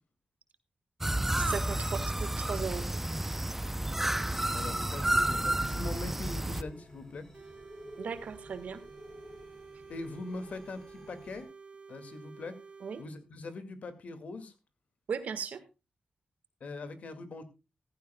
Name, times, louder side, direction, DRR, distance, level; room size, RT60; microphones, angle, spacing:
sound 1, 1.0-6.6, right 1 dB, 10° right, 0.6 m, -31 dB
sound 2, 1.1-11.4, equal, 20° left, 4.5 m, -53 dB
voice 1, 1.4-2.8 8.0-8.8 12.8-13.0 15.1-15.6, right 6 dB, 80° right, 12 dB, 1.6 m, -37 dB
voice 2, 4.5-7.3 9.9-11.5 11.9-12.6 13.0-14.5 16.6-17.4, left 3 dB, 65° left, 10 dB, 2.2 m, -42 dB
sound 3, 7.3-13.1, right 5 dB, 55° right, 2.7 m, -51 dB
15.0 x 14.5 x 2.3 m, 0.27 s
wide cardioid pair, 100°, 3 cm